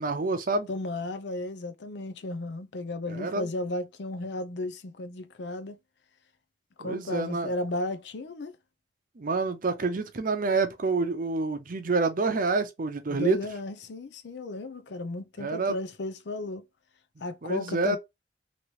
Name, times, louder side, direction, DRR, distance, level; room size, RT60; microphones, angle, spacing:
voice 1, 0.0-0.7 3.1-3.5 6.8-7.5 9.2-13.4 15.4-15.8 17.4-18.0, right 3 dB, 50° right, 0.6 m, -28 dB
voice 2, 0.7-5.8 6.8-8.5 13.1-16.6 17.2-18.0, left 2 dB, 70° left, 0.5 m, -34 dB
3.1 x 2.9 x 2.8 m
head